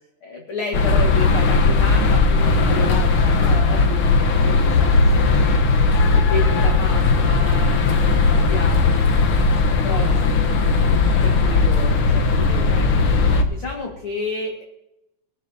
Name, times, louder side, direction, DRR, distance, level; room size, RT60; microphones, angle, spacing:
voice 1, 0.2-5.6 6.0-10.5 11.2-12.9 13.1-14.6, left 2 dB, 45° left, 0 dB, 2.4 m, -31 dB
sound 1, 0.7-13.4, left 3 dB, 65° left, 1.3 m, -17 dB
20.5 x 13.5 x 2.8 m, 0.87 s
omnidirectional pair, 3.8 m